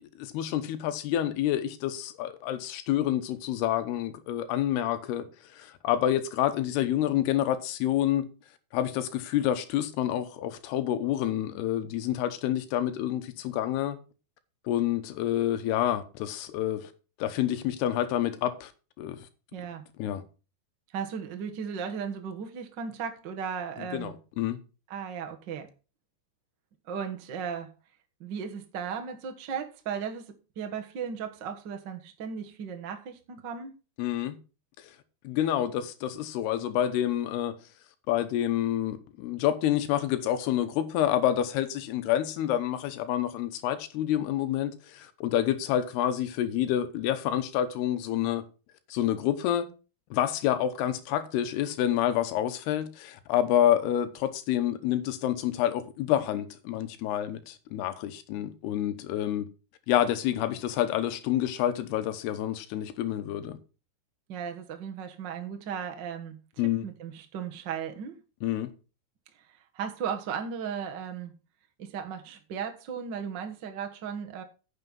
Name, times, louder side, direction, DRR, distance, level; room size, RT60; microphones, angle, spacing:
voice 1, 0.0-8.3 8.7-14.0 14.7-16.9 17.2-18.7 19.0-19.3 20.0-20.2 23.8-24.6 34.0-34.4 34.8-34.9 35.2-37.6 38.1-48.5 48.9-49.7 50.1-59.5 59.9-63.6 66.6-66.9 68.4-68.7, left 11 dB, 85° left, 3.1 m, -28 dB
voice 2, 19.5-19.8 20.9-24.1 24.9-25.7 26.8-27.7 28.2-33.7 64.3-66.4 66.8-68.2 69.7-71.3 71.8-74.4, right 7 dB, 75° right, 1.0 m, -36 dB
9.8 x 6.7 x 5.3 m
omnidirectional pair, 4.5 m